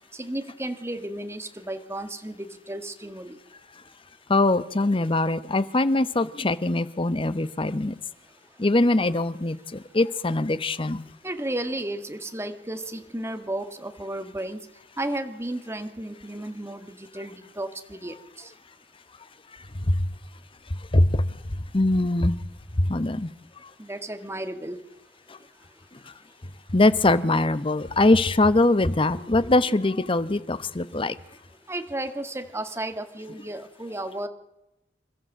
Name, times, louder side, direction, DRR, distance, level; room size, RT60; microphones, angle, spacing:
voice 1, 0.1-3.4 11.2-14.7 15.0-18.5 23.8-24.8 31.7-34.3, right 1 dB, 15° right, 8 dB, 1.7 m, -33 dB
voice 2, 4.3-7.9 8.6-11.0 19.8-20.1 20.7-22.4 22.8-23.3 25.3-25.4 26.7-31.2, left 2 dB, 30° left, 14 dB, 0.9 m, -22 dB
27.5 x 14.0 x 7.6 m, 0.92 s
head